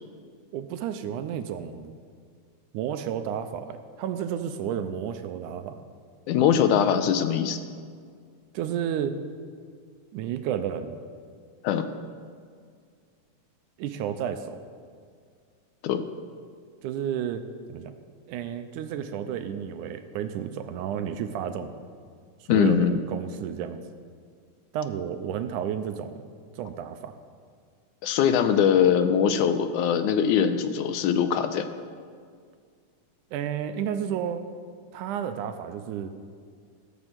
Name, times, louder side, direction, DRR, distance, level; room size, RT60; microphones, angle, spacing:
voice 1, 0.5-1.9 2.7-5.8 8.5-9.2 10.1-10.9 13.8-14.6 16.8-17.9 18.3-21.7 22.5-23.8 24.7-26.3 26.5-27.2 33.3-34.5 34.9-36.1, right 9 dB, 80° right, 9 dB, 2.0 m, -32 dB
voice 2, 6.3-7.6 11.6-11.9 15.8-16.0 22.5-23.0 28.0-31.7, left 8 dB, 80° left, 9 dB, 2.0 m, -22 dB
17.0 x 6.2 x 7.5 m, 2.1 s
omnidirectional pair, 3.7 m